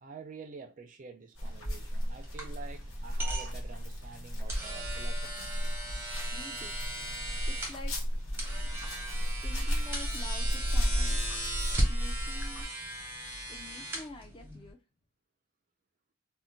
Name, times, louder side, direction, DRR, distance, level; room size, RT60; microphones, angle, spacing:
voice 1, 0.0-5.7, right 5 dB, 40° right, 0.3 m, -48 dB
sound 1, 1.3-12.7, equal, 80° left, 0.9 m, -33 dB
sound 2, 1.4-14.7, right 1 dB, 10° right, 0.7 m, -38 dB
voice 2, 6.3-6.8 7.5-7.9 9.4-11.4 11.8-12.7 13.5-14.8, left 2 dB, 25° left, 0.4 m, -48 dB
2.2 x 2.1 x 3.8 m
head